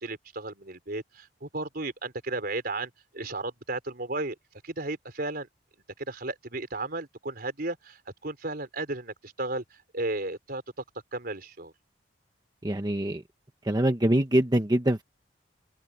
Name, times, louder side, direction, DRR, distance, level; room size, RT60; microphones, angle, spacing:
voice 1, 0.0-4.3 4.6-5.5 6.0-9.6 9.9-10.6 11.1-11.7, right 2 dB, 55° right, 4.1 m, -34 dB
voice 2, 12.6-13.2 13.7-15.0, right 1 dB, 25° right, 1.0 m, -24 dB
head